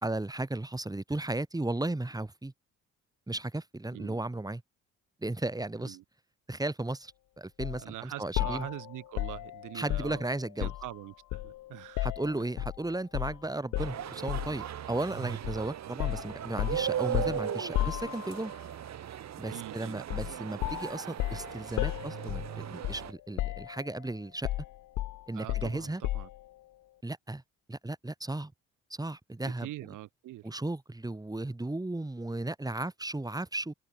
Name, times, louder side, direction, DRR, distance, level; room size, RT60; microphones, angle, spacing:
voice 1, 0.0-2.5 3.3-4.6 5.2-6.0 6.5-8.7 9.7-10.7 12.0-18.5 19.4-24.5 25.3-26.0 27.0-27.4 27.7-28.5 29.0-29.7 30.4-33.7, right 2 dB, 10° right, 4.3 m, -35 dB
voice 2, 3.9-4.2 5.8-6.0 7.8-10.2 10.6-12.1 15.8-16.0 19.5-20.0 25.3-26.3 29.4-30.5, right 16 dB, 90° right, 6.7 m, -43 dB
sound 1, 7.6-7.8 8.4-11.0 11.3-12.8 13.1-13.4 13.7-14.6 15.4-15.6 16.0-18.6 20.1-20.4 20.6-23.1 23.4-24.0 24.4-26.4, left 15 dB, 85° left, 2.1 m, -34 dB
sound 2, 13.8-23.1, right 10 dB, 60° right, 2.0 m, -38 dB
open air
cardioid pair, 90°, 30 cm